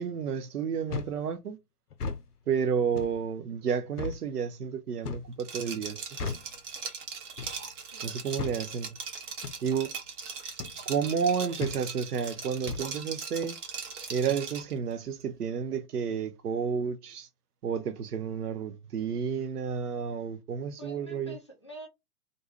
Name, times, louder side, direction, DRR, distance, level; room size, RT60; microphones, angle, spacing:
voice 1, 0.0-1.6 2.5-6.0 8.0-9.0 9.6-9.9 10.9-13.6 14.1-17.3 17.6-21.4, right 7 dB, 80° right, 0.5 m, -31 dB
sound 1, 0.9-1.2 1.9-2.2 3.0-3.2 4.0-4.2 5.0-5.3 6.2-6.5 7.4-7.6 8.4-8.6 9.4-9.6 10.6-10.8 11.6-11.8 12.7-12.9, left 5 dB, 80° left, 0.6 m, -35 dB
Liquid, 5.4-14.7, right 5 dB, 50° right, 0.9 m, -40 dB
voice 2, 7.9-8.2 20.8-21.9, equal, 25° left, 0.3 m, -46 dB
2.5 x 2.2 x 2.7 m
figure-of-eight pair, 110°, 46 cm